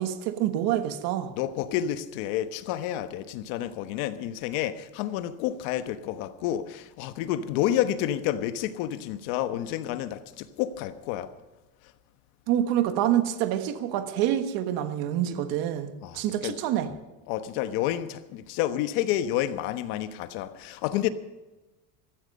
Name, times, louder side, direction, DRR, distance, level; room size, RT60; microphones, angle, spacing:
voice 1, 0.0-1.3 12.5-16.9, right 11 dB, 60° right, 1.4 m, -27 dB
voice 2, 1.3-11.3 16.0-16.6 16.9-17.0 17.3-21.1, left 12 dB, 75° left, 1.3 m, -29 dB
15.5 x 14.0 x 5.4 m
cardioid pair, 165°, 42 cm